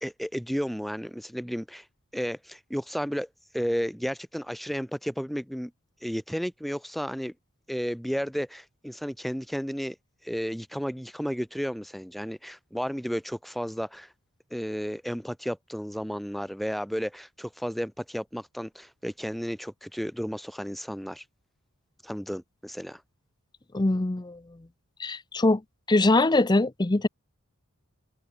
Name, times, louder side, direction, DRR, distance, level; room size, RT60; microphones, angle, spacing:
voice 1, 0.0-1.9 2.1-3.3 3.5-5.7 6.0-7.3 7.7-10.0 10.2-14.1 14.5-21.2 22.0-23.0, equal, ahead, 1.3 m, -33 dB
voice 2, 23.7-24.7 25.0-25.6 25.9-27.1, left 2 dB, 20° left, 0.6 m, -23 dB
open air
head